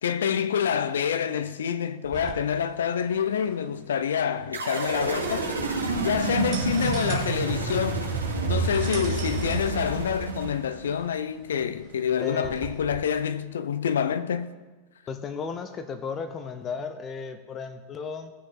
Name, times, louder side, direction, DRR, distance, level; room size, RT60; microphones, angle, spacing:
voice 1, 0.0-5.5 6.0-8.1 8.4-14.5, left 7 dB, 65° left, 0.5 m, -27 dB
sound 1, 2.0-13.0, right 7 dB, 35° right, 1.5 m, -44 dB
sound 2, 4.5-11.0, right 4 dB, 85° right, 1.9 m, -29 dB
voice 2, 12.2-12.6 15.1-18.3, left 5 dB, 25° left, 0.7 m, -34 dB
17.5 x 6.2 x 3.7 m
figure-of-eight pair, 90°, 0 cm